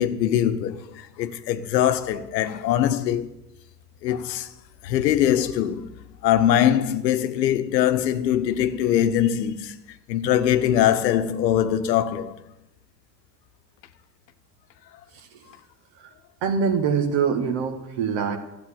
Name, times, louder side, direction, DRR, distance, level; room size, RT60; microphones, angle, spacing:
voice 1, 0.0-3.3 4.0-4.5 4.8-5.9 6.2-9.8 10.1-12.4, left 10 dB, 80° left, 1.0 m, -22 dB
voice 2, 15.1-15.4 16.0-16.1 16.4-18.4, right 6 dB, 60° right, 2.1 m, -24 dB
13.0 x 8.2 x 8.7 m
hypercardioid pair, 60°, 49 cm